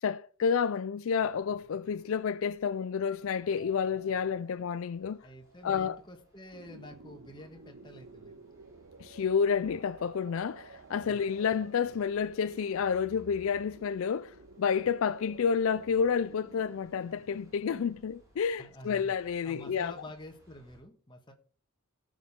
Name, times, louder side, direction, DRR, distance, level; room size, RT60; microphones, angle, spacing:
voice 1, 0.0-5.3 5.6-6.0 9.0-19.9, left 6 dB, 65° left, 0.4 m, -30 dB
sound 1, 1.1-20.8, right 1 dB, 15° right, 4.0 m, -63 dB
sound 2, 3.6-7.2, left 1 dB, 80° right, 2.8 m, -59 dB
voice 2, 5.2-8.3 11.0-11.2 18.6-19.2 19.4-21.3, left 1 dB, 20° left, 1.5 m, -48 dB
sound 3, 6.5-18.0, right 3 dB, 65° right, 0.6 m, -53 dB
17.0 x 6.5 x 3.6 m
head